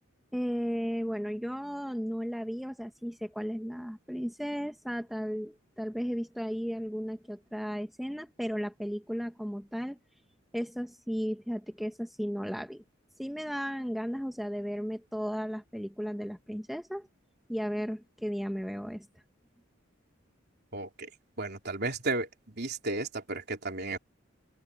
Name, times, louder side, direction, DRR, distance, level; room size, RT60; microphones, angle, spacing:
voice 1, 0.3-10.0 10.5-12.8 13.2-17.1 17.5-19.1, equal, ahead, 1.1 m, -35 dB
voice 2, 20.7-21.1 21.4-24.0, right 2 dB, 55° right, 3.8 m, -34 dB
open air
head